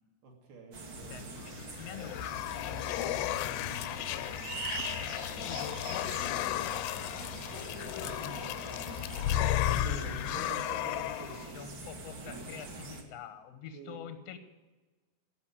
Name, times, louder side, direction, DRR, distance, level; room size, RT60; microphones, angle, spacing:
voice 1, 0.2-1.1 9.7-11.6 13.7-14.0, right 4 dB, 75° right, 0 dB, 4.5 m, -46 dB
sound 1, 0.7-13.0, right 3 dB, 45° right, 1.6 m, -43 dB
voice 2, 1.1-4.5 5.4-7.2 7.9-10.6 11.5-14.4, left 7 dB, 70° left, 9 dB, 1.5 m, -47 dB
sound 2, 1.5-11.5, left 13 dB, 90° left, 2.7 m, -34 dB
17.0 x 6.1 x 9.9 m, 1.2 s
omnidirectional pair, 4.5 m